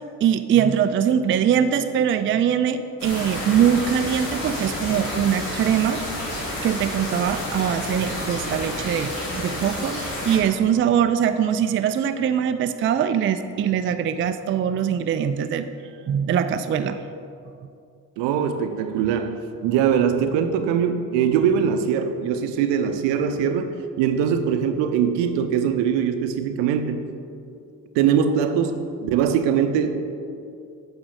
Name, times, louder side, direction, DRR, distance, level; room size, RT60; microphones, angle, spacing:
voice 1, 0.2-6.0 6.6-15.7 16.1-17.0, right 8 dB, 30° right, 10 dB, 0.4 m, -22 dB
sound 1, 3.0-10.4, left 1 dB, 85° left, 1.6 m, -30 dB
voice 2, 18.2-27.1 27.9-28.8 29.0-29.9, right 8 dB, 70° right, 8 dB, 0.7 m, -22 dB
8.6 x 6.1 x 3.7 m, 2.5 s
hypercardioid pair, 40°, 45 cm